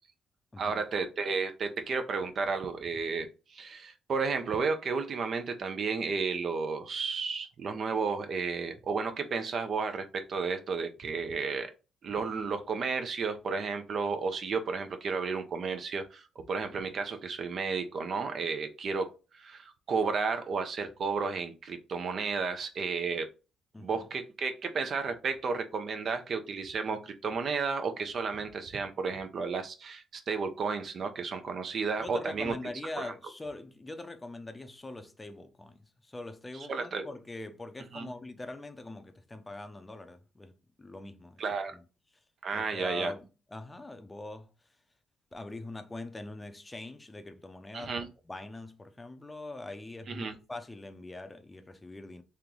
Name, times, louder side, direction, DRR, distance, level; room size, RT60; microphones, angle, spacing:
voice 1, 0.6-11.7 12.0-23.3 23.8-32.5 33.0-33.1 36.5-37.1 37.9-38.1 41.4-41.7 42.4-43.1 47.7-48.1 50.1-50.4, right 5 dB, 55° right, 0.7 m, -32 dB
voice 2, 23.7-24.1 32.0-41.4 42.5-44.5 45.3-47.9 48.3-52.2, left 2 dB, 20° left, 0.6 m, -43 dB
3.2 x 2.9 x 3.7 m
cardioid pair, 90°, 0 cm